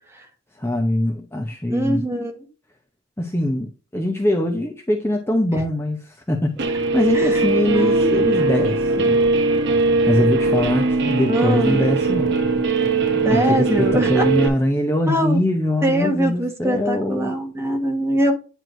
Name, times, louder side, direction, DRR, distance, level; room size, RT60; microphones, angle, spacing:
voice 1, 0.6-2.0 3.2-9.2 10.1-12.4 13.1-17.3, left 1 dB, 10° left, 0.7 m, -22 dB
voice 2, 1.7-2.4 7.1-7.4 7.7-8.3 11.3-11.8 13.2-14.3 15.1-15.4 15.8-18.3, equal, 15° right, 1.4 m, -22 dB
Guitar, 6.6-14.5, right 3 dB, 55° right, 0.9 m, -20 dB
9.5 x 4.6 x 2.6 m
head